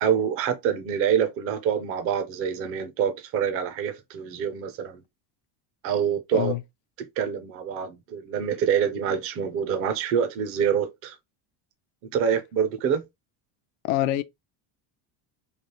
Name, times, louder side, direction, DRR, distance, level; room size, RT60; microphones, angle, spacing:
voice 1, 0.0-5.0 5.8-6.5 7.0-11.2 12.1-13.0, right 8 dB, 35° right, 0.4 m, -26 dB
voice 2, 13.8-14.2, left 15 dB, 80° left, 0.6 m, -25 dB
3.3 x 2.4 x 2.7 m
cardioid pair, 170°, 44 cm